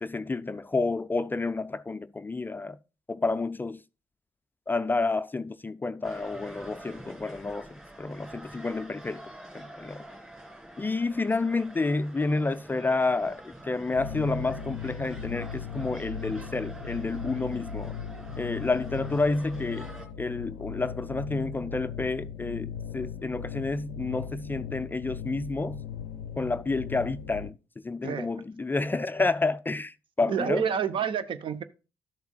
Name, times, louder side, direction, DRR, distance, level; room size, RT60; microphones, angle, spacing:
voice 1, 0.0-2.8 3.1-3.8 4.7-9.2 9.5-10.1 10.8-18.0 18.4-19.9 20.2-25.8 26.4-27.5 27.8-30.6, left 3 dB, 15° left, 0.4 m, -30 dB
sound 1, 6.0-20.1, right 1 dB, 10° right, 3.0 m, -46 dB
sound 2, 13.9-27.5, left 7 dB, 75° left, 0.5 m, -38 dB
voice 2, 30.3-31.6, right 7 dB, 50° right, 0.7 m, -28 dB
12.0 x 6.9 x 2.3 m
figure-of-eight pair, 40°, 11 cm